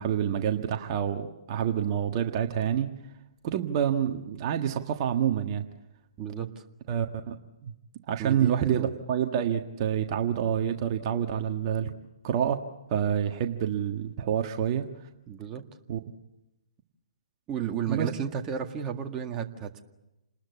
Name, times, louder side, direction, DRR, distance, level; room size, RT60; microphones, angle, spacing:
voice 1, 0.0-2.9 3.4-5.6 6.9-7.3 7.6-7.7 8.1-11.9 12.2-12.6 12.9-14.9 15.9-16.0 17.9-18.1, right 9 dB, 40° right, 4 dB, 1.6 m, -27 dB
voice 2, 6.2-6.6 8.2-8.9 15.3-15.6 17.5-19.8, right 8 dB, 20° right, 3 dB, 2.0 m, -33 dB
28.5 x 20.5 x 8.4 m, 0.97 s
figure-of-eight pair, 130°, 4 cm